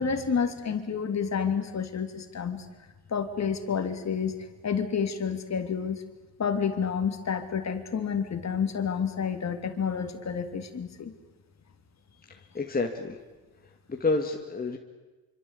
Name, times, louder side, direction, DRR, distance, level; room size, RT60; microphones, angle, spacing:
voice 1, 0.0-2.6 3.1-4.3 4.6-6.0 6.4-11.1, left 6 dB, 35° left, 7 dB, 3.2 m, -29 dB
voice 2, 12.3-13.2 13.9-14.8, left 3 dB, 20° left, 2 dB, 2.2 m, -29 dB
26.5 x 25.5 x 8.5 m, 1.2 s
cardioid pair, 110°, 43 cm